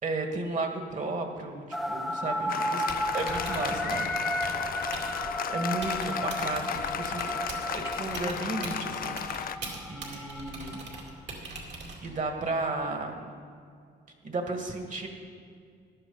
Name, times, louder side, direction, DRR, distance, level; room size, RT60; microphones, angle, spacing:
voice 1, 0.0-2.9 3.1-4.1 4.4-4.5 5.5-7.3 7.7-10.8 12.0-13.3 14.2-15.1, right 2 dB, 40° right, 4 dB, 1.9 m, -34 dB
sound 1, 1.7-11.2, equal, ahead, 0.6 m, -34 dB
Applause, 2.5-9.6, left 9 dB, 50° left, 0.5 m, -34 dB
Typing, 2.8-12.3, right 2 dB, 60° right, 2.5 m, -42 dB
14.5 x 10.5 x 4.1 m, 2.2 s
cardioid pair, 90°, 20 cm